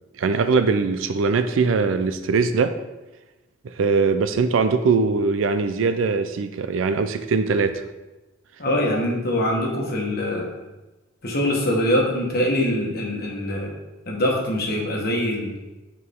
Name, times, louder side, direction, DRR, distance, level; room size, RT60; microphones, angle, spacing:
voice 1, 0.2-2.7 3.6-7.8, right 4 dB, 75° right, 10 dB, 0.4 m, -21 dB
voice 2, 8.6-10.5 11.2-13.7 14.0-15.5, left 1 dB, 50° left, -1 dB, 1.4 m, -23 dB
6.4 x 4.4 x 3.6 m, 1.1 s
head